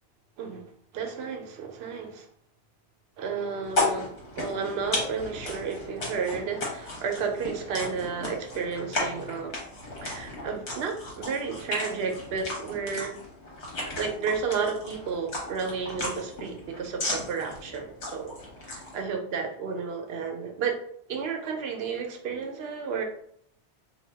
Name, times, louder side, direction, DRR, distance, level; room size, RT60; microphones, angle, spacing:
voice 1, 0.9-2.3 3.2-9.5 10.0-13.1 14.0-18.3 18.7-20.7 21.1-23.0, right 5 dB, 70° right, 4 dB, 0.8 m, -32 dB
sound 1, 3.7-19.0, left 2 dB, 80° left, 1.2 m, -35 dB
2.7 x 2.2 x 3.3 m, 0.66 s
omnidirectional pair, 1.2 m